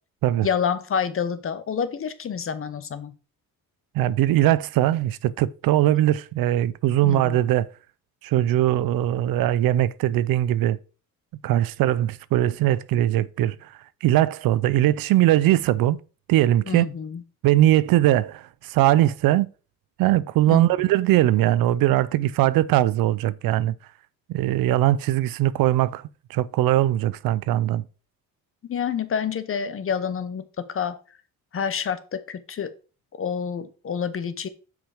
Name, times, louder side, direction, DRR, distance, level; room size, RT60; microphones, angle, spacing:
voice 1, 0.4-3.1 7.0-7.4 16.7-17.2 20.5-20.7 28.7-31.0 31.5-32.7 33.2-34.5, left 7 dB, 40° left, 0.9 m, -28 dB
voice 2, 3.9-7.7 8.2-10.8 11.4-13.7 14.0-16.0 16.3-16.9 17.4-19.5 20.0-23.7 24.3-26.0 26.3-27.8, right 14 dB, 80° right, 0.5 m, -20 dB
6.2 x 5.2 x 4.8 m
cardioid pair, 120°, 35 cm